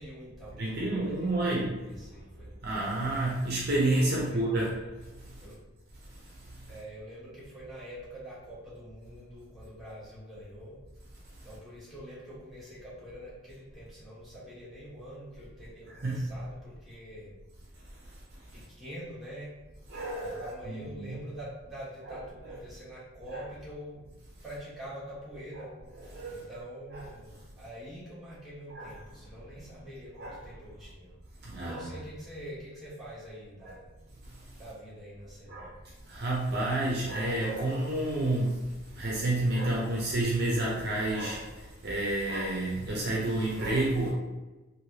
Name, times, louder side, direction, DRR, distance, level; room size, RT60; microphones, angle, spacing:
voice 1, 0.0-2.5 4.1-4.5 5.4-5.6 6.7-10.8 11.4-17.3 18.5-19.5 20.2-24.1 24.4-25.7 26.3-31.1 31.4-33.9 34.6-35.8, equal, ahead, -11 dB, 1.2 m, -45 dB
voice 2, 0.6-1.7 2.6-4.7 16.0-16.2 19.9-21.2 22.1-22.2 22.5-22.6 23.3-23.4 26.1-26.4 28.8-28.9 30.2-30.4 31.4-31.9 33.6-33.7 35.5-35.7 36.1-38.5 38.9-41.4 41.8-44.1, right 2 dB, 50° right, -4 dB, 0.6 m, -29 dB
3.3 x 2.6 x 2.8 m, 1.1 s
head